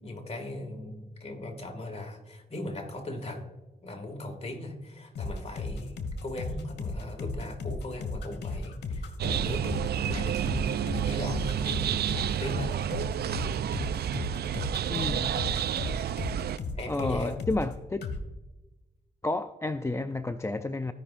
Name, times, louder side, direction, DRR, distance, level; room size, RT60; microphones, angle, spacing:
voice 1, 0.0-3.5 3.8-12.1 12.4-12.7 16.7-17.4, left 1 dB, 35° left, 3 dB, 2.1 m, -38 dB
sound 1, 5.2-17.7 18.0-18.2, left 3 dB, 80° left, 1.3 m, -35 dB
sound 2, 9.2-16.6, right 10 dB, 70° right, 0.4 m, -30 dB
voice 2, 14.9-15.4 16.9-18.1 19.2-20.9, left 2 dB, 15° left, 9 dB, 0.4 m, -31 dB
16.5 x 5.5 x 2.6 m, 1.1 s
cardioid pair, 65°, 17 cm